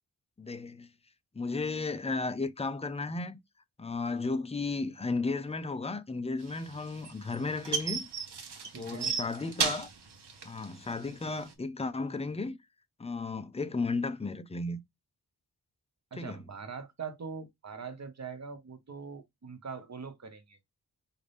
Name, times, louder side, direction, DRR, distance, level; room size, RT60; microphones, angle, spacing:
voice 1, 0.4-0.9 1.3-3.4 3.8-8.1 8.8-9.9 10.4-12.6 13.0-14.8 16.2-16.4, left 3 dB, 15° left, 0.4 m, -34 dB
sound 1, 6.5-11.5, right 5 dB, 80° right, 1.1 m, -34 dB
voice 2, 8.7-9.2 16.1-20.6, right 5 dB, 45° right, 1.0 m, -42 dB
5.0 x 2.7 x 3.4 m
wide cardioid pair, 110°, 39 cm